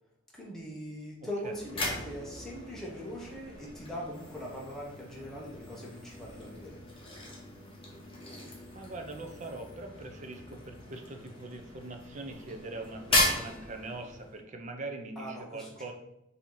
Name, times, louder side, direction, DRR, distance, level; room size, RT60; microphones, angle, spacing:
voice 1, 0.3-6.8 15.2-15.9, equal, ahead, -4 dB, 0.8 m, -41 dB
voice 2, 1.2-1.6 8.7-15.9, right 2 dB, 40° right, 5 dB, 0.5 m, -42 dB
sound 1, 1.4-14.4, left 1 dB, 25° left, 1.0 m, -37 dB
4.1 x 2.7 x 4.5 m, 0.85 s
head